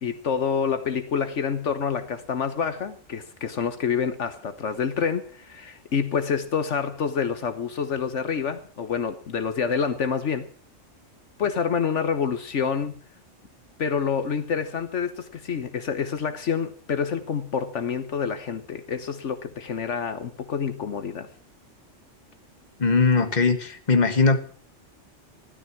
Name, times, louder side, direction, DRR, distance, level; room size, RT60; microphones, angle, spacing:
voice 1, 0.0-10.5 11.4-12.9 13.8-21.3, left 6 dB, 70° left, 1.4 m, -27 dB
voice 2, 22.8-24.4, left 4 dB, 35° left, 1.6 m, -20 dB
15.5 x 12.5 x 6.0 m
omnidirectional pair, 1.3 m